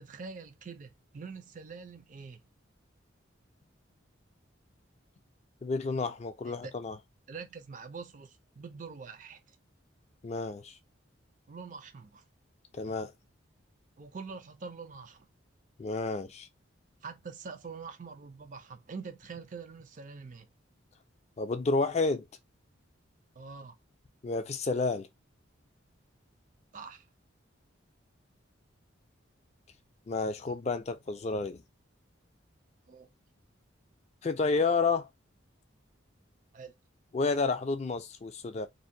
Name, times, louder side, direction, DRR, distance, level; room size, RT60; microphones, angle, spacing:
voice 1, 0.0-2.4 6.6-6.7 7.3-9.6 11.5-12.2 14.0-15.3 17.0-20.5 23.4-23.7 26.7-27.1 32.9-33.1 36.5-36.7, right 5 dB, 40° right, 0.4 m, -45 dB
voice 2, 5.6-7.0 10.2-10.8 12.7-13.1 15.8-16.5 21.4-22.2 24.2-25.1 30.1-31.6 34.2-35.1 37.1-38.7, left 4 dB, 35° left, 0.3 m, -30 dB
2.6 x 2.1 x 2.6 m
head